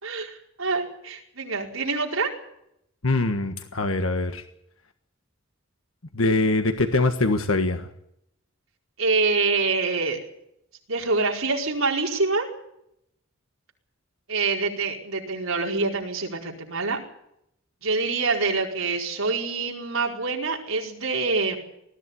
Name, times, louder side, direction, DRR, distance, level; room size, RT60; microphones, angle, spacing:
voice 1, 0.0-2.3 9.0-10.2 10.9-12.5 14.3-17.0 17.8-21.6, right 3 dB, 75° right, 0 dB, 4.8 m, -25 dB
voice 2, 3.0-4.4 6.1-7.9, left 2 dB, 75° left, 7 dB, 1.5 m, -23 dB
20.0 x 15.0 x 9.9 m, 0.76 s
head